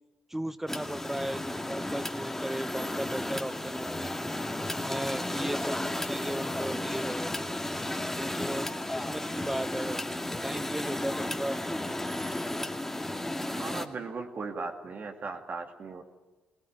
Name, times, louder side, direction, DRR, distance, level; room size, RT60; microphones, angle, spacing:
voice 1, 0.3-4.1 4.8-7.3 8.2-10.1 10.4-11.6, right 1 dB, 5° right, 14 dB, 0.9 m, -36 dB
sound 1, 0.7-13.9, left 1 dB, 10° left, 2.2 m, -33 dB
voice 2, 13.5-16.0, right 4 dB, 55° right, 4 dB, 2.5 m, -38 dB
22.0 x 19.0 x 9.6 m, 1.2 s
supercardioid pair, 55°, 4 cm